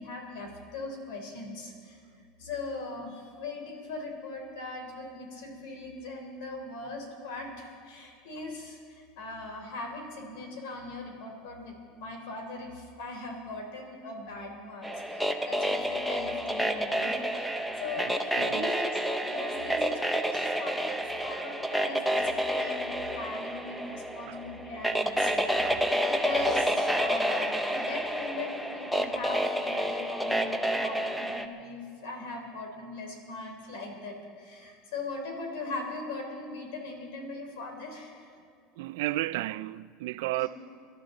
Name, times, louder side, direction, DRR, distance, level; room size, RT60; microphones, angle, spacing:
voice 1, 0.0-2.0 2.4-18.8 19.2-38.3 40.3-40.5, left 2 dB, 70° left, 3.8 m, -40 dB
sound 1, 14.8-31.4, equal, ahead, 0.7 m, -29 dB
voice 2, 18.3-18.7 21.2-21.3 24.3-24.4 25.6-25.8 38.8-40.5, right 18 dB, 75° right, 0.4 m, -33 dB
25.0 x 12.0 x 3.9 m
supercardioid pair, 150°, 0 cm